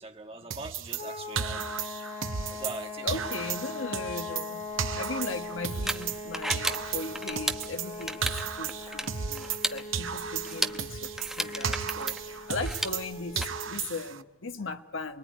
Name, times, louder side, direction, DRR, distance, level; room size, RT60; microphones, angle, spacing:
voice 1, 0.0-1.7 2.5-3.1 13.3-13.4, right 2 dB, 30° right, 1.7 m, -41 dB
sound 1, 0.5-2.8 3.1-6.2 6.5-9.7 9.9-13.1 13.4-14.2, right 7 dB, 75° right, 0.9 m, -34 dB
sound 2, 1.0-13.8, left 2 dB, 40° left, 2.5 m, -40 dB
voice 2, 3.0-15.2, left 3 dB, 75° left, 1.4 m, -38 dB
sound 3, 4.7-13.4, right 1 dB, ahead, 0.9 m, -35 dB
28.0 x 22.0 x 9.4 m
head